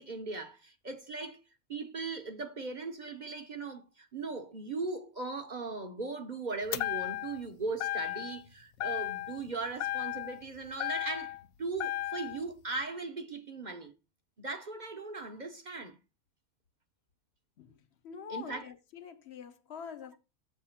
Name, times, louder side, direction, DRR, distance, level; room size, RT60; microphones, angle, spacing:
voice 1, 0.0-1.4 1.7-13.9 14.4-16.0 18.3-18.7, right 3 dB, 40° right, 0.7 m, -38 dB
sound 1, 6.7-7.5 7.8-8.5 8.8-9.5 9.8-11.4 11.8-12.4, left 14 dB, 80° left, 1.0 m, -35 dB
voice 2, 18.0-20.2, left 7 dB, 55° left, 0.9 m, -45 dB
7.7 x 3.6 x 5.6 m
omnidirectional pair, 1.5 m